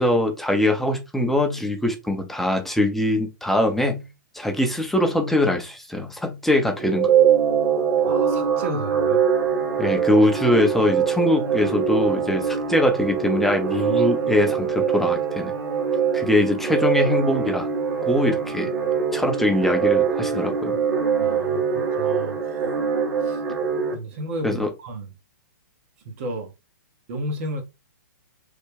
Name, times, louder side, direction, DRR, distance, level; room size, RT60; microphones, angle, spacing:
voice 1, 0.0-4.1 4.3-7.1 9.8-15.5 16.1-17.7 18.0-18.7 19.1-20.8 24.4-24.7, left 1 dB, ahead, 0.5 m, -22 dB
sound 1, 6.8-23.9, right 7 dB, 65° right, 1.1 m, -23 dB
voice 2, 8.0-9.2 21.2-22.4 23.2-23.4 23.9-25.1 26.0-26.5 27.1-27.6, right 1 dB, 45° right, 0.7 m, -32 dB
3.2 x 2.1 x 3.3 m
hypercardioid pair, 125°, 11 cm